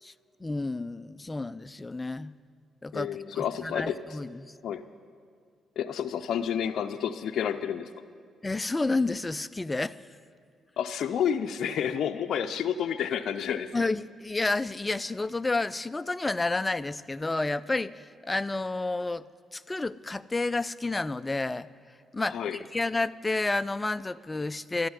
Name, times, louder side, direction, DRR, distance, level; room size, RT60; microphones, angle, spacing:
voice 1, 0.4-2.3 2.8-4.5 8.4-10.0 13.7-19.2 19.5-21.7 22.1-24.9, left 2 dB, 20° left, 15 dB, 0.4 m, -30 dB
voice 2, 2.9-4.0 4.6-4.8 5.8-7.9 10.8-13.7 22.3-22.6, left 8 dB, 65° left, 7 dB, 0.5 m, -30 dB
12.5 x 11.5 x 9.6 m, 2.2 s
cardioid pair, 90°, 0 cm